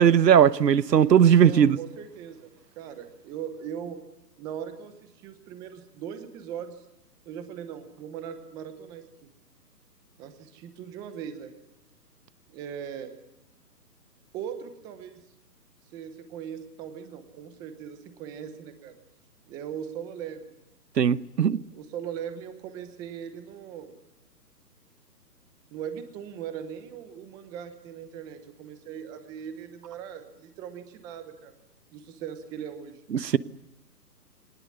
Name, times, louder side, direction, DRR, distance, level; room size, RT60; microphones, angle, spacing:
voice 1, 0.0-1.8 21.0-21.6 33.1-33.4, right 8 dB, 75° right, 1.2 m, -18 dB
voice 2, 1.4-2.5 2.8-4.0 4.4-6.8 7.3-9.1 10.2-11.5 12.5-13.1 14.3-15.2 15.9-19.0 19.5-20.6 21.7-23.9 25.7-31.5 31.9-33.0, right 8 dB, 10° right, 0.8 m, -39 dB
22.0 x 19.5 x 9.6 m
hypercardioid pair, 155°, 50 cm